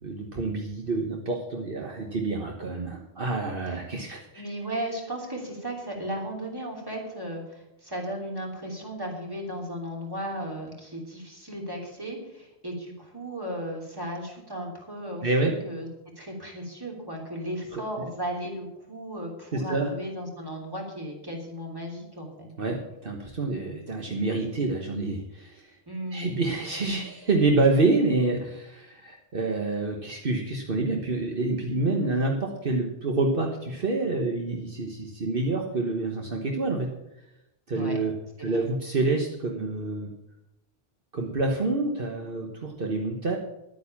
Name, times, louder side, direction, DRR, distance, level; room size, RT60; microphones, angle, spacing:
voice 1, 0.0-4.4 15.2-15.5 17.7-18.1 19.5-19.9 22.6-25.8 26.1-36.9 37.7-38.1 38.4-40.1 41.1-43.4, right 3 dB, 60° right, 1 dB, 1.5 m, -27 dB
voice 2, 4.3-15.9 16.2-22.5 25.9-26.3 37.7-38.0 38.4-38.7, equal, 20° right, -1 dB, 3.2 m, -35 dB
11.0 x 9.2 x 7.1 m, 0.88 s
omnidirectional pair, 1.1 m